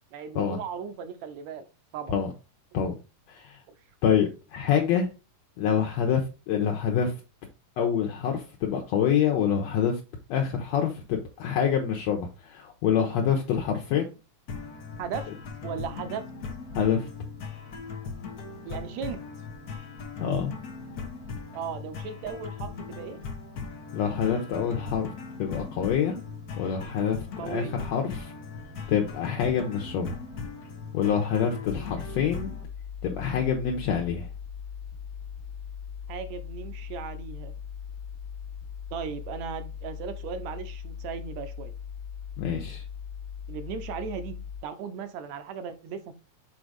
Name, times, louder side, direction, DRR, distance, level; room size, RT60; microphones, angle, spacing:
voice 1, 0.1-1.6 1.9-2.2 2.7-2.9 15.0-15.3 15.6-16.2 18.7-19.2 21.5-23.2 27.4-27.8 36.1-37.6 38.9-41.7 43.5-44.4 44.6-46.1, right 7 dB, 75° right, 10 dB, 2.0 m, -36 dB
voice 2, 3.3-3.6 4.0-5.1 5.6-7.1 7.8-10.0 10.3-14.1 16.7-17.0 20.2-20.5 23.9-25.1 25.4-26.2 26.6-28.3 28.9-30.2 30.9-32.5 33.0-34.3 42.4-42.8, left 8 dB, 70° left, 1 dB, 2.0 m, -26 dB
sound 1, 14.5-32.6, left 4 dB, 85° left, 0.8 m, -39 dB
sound 2, 31.7-44.6, left 7 dB, 45° left, 1.7 m, -39 dB
6.3 x 3.9 x 4.8 m, 0.30 s
omnidirectional pair, 3.4 m